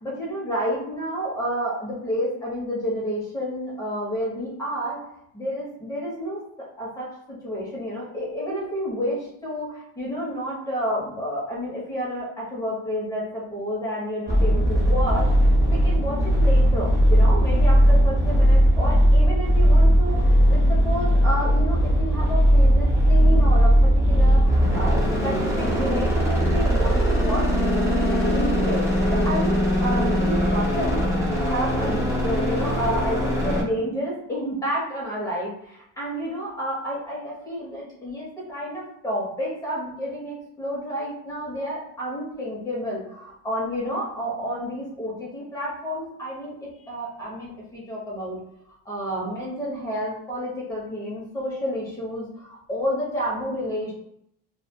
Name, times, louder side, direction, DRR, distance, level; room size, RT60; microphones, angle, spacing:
voice 1, 0.0-5.0 5.3-6.4 6.8-15.3 15.7-27.5 27.9-31.1 31.4-48.4 48.8-53.9, equal, 10° left, -6 dB, 0.8 m, -30 dB
sound 1, 14.3-33.6, equal, 10° right, 0.3 m, -19 dB
2.6 x 2.4 x 2.2 m, 0.74 s
cardioid pair, 165°, 33 cm